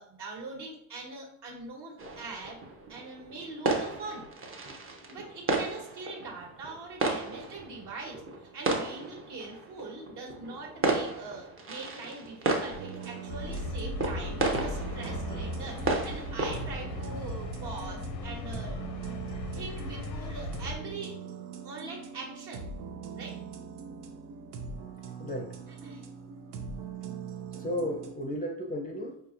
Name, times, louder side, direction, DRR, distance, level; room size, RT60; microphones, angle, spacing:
voice 1, 0.0-2.6 2.9-4.3 5.1-18.8 19.5-21.2 21.6-22.7 23.1-23.4 25.7-26.0, right 3 dB, 50° right, -1 dB, 1.4 m, -42 dB
sound 1, 2.0-17.1, right 3 dB, 25° right, 0.7 m, -34 dB
sound 2, 12.7-28.1, right 5 dB, 80° right, 0.7 m, -42 dB
sound 3, 13.3-20.8, left 1 dB, 80° left, 0.8 m, -37 dB
voice 2, 25.2-25.6 27.5-29.2, equal, 20° left, 1 dB, 0.6 m, -34 dB
4.3 x 2.7 x 2.5 m, 0.76 s
hypercardioid pair, 70°, 50 cm